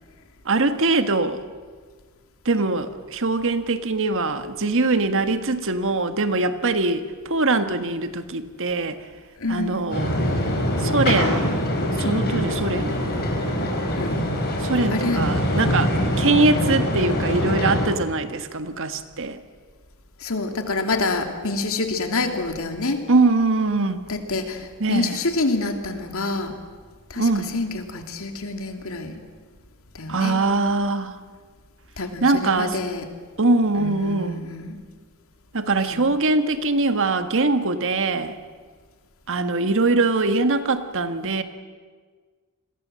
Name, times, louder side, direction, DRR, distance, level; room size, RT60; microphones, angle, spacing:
voice 1, 0.4-1.4 2.4-9.0 9.5-10.2 10.8-11.5 12.0-13.2 14.6-19.4 23.1-24.0 24.8-25.2 27.2-27.5 30.1-31.1 32.2-32.8 33.4-34.4 35.5-38.4 39.3-41.4, right 3 dB, 60° right, 9 dB, 1.6 m, -22 dB
voice 2, 9.4-9.8 12.0-12.3 13.9-14.3 14.9-15.3 15.9-16.1 20.2-23.0 24.1-26.5 27.1-29.2 29.9-30.4 32.0-33.1 33.8-34.8 35.9-36.1, left 3 dB, 65° left, 5 dB, 2.8 m, -27 dB
sound 1, 9.9-17.9, equal, 45° left, 5.0 m, -23 dB
29.5 x 22.0 x 7.7 m, 1.5 s
head